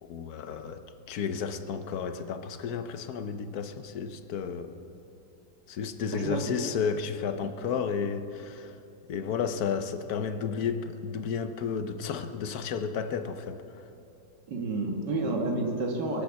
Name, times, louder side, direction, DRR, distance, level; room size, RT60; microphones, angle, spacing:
voice 1, 0.0-4.7 5.7-8.7 9.1-13.6, left 6 dB, 65° left, 9 dB, 1.2 m, -32 dB
voice 2, 6.1-6.5 7.4-7.7 14.5-16.2, right 2 dB, 75° right, 1 dB, 2.2 m, -30 dB
22.5 x 7.7 x 7.2 m, 2.8 s
omnidirectional pair, 1.9 m